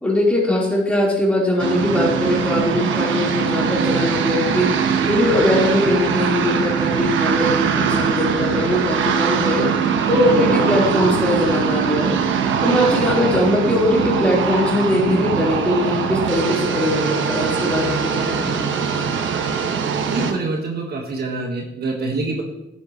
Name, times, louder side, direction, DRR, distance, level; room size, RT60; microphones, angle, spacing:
voice 1, 0.0-9.7 10.1-12.2 12.6-18.6, left 1 dB, 5° left, -5 dB, 4.1 m, -20 dB
sound 1, 1.6-20.3, right 6 dB, 75° right, 1.1 m, -21 dB
voice 2, 20.0-22.4, right 3 dB, 55° right, 1 dB, 1.7 m, -25 dB
11.0 x 9.3 x 3.2 m, 0.90 s
cardioid pair, 90°, 20 cm